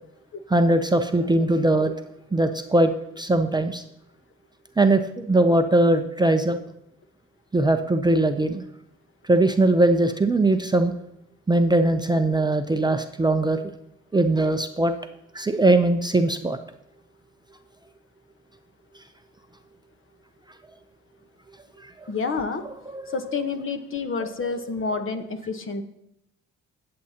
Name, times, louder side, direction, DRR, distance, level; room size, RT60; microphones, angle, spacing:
voice 1, 0.5-1.9 2.3-2.9 3.2-3.8 4.8-6.6 7.5-8.6 9.3-10.9 11.5-13.6 14.1-14.9 15.3-16.6 22.9-23.2, right 2 dB, 15° right, 7 dB, 0.6 m, -20 dB
voice 2, 22.1-22.7 23.1-25.8, left 4 dB, 45° left, 7 dB, 1.1 m, -29 dB
18.5 x 7.6 x 2.9 m, 0.82 s
cardioid pair, 90°, 30 cm